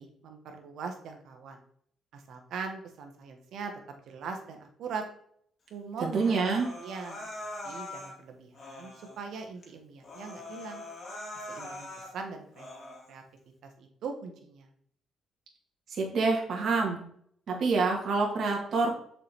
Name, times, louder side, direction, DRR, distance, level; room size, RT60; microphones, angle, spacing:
voice 1, 0.0-1.6 2.1-5.0 5.7-6.4 6.8-7.2 7.6-10.8 11.5-12.7 13.1-13.2 13.6-14.7, right 5 dB, 75° right, 4 dB, 1.4 m, -41 dB
voice 2, 6.0-6.7 15.9-17.0 17.5-18.9, right 4 dB, 55° right, -1 dB, 1.8 m, -27 dB
Human voice, 6.1-8.2 8.5-9.2 9.6-9.7 10.0-12.1 12.5-13.1, left 1 dB, 50° left, 2.1 m, -42 dB
6.8 x 4.9 x 3.5 m, 0.64 s
cardioid pair, 90°, 0 cm